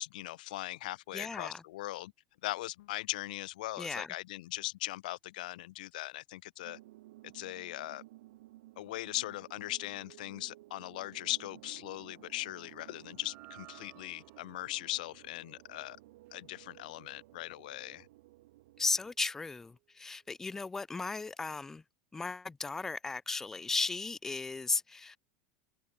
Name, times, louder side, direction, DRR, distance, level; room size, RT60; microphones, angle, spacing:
voice 1, 0.0-2.1 2.4-6.8 7.3-8.0 8.8-16.0 16.3-18.1, left 17 dB, 85° left, 0.9 m, -39 dB
voice 2, 1.1-1.6 3.8-4.1 18.8-21.8 22.1-25.2, left 3 dB, 10° left, 0.7 m, -35 dB
sound 1, 6.6-19.1, right 17 dB, 80° right, 2.0 m, -56 dB
sound 2, 13.0-19.4, right 19 dB, 45° right, 4.5 m, -61 dB
supercardioid pair, 160°, 4 cm